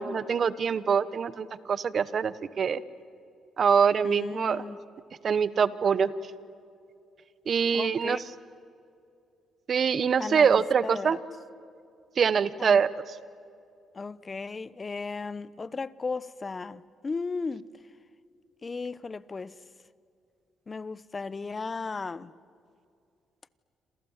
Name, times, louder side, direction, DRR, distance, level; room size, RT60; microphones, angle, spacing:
voice 1, 0.0-2.8 3.6-4.6 5.2-6.1 7.5-8.2 9.7-11.2 12.2-12.9, right 6 dB, 50° right, 1.1 m, -24 dB
voice 2, 4.0-4.8 7.7-8.2 10.2-11.2 12.6-12.8 13.9-17.7 18.6-19.6 20.7-22.3, left 4 dB, 30° left, 0.9 m, -35 dB
28.0 x 27.5 x 7.4 m
cardioid pair, 90°, 0 cm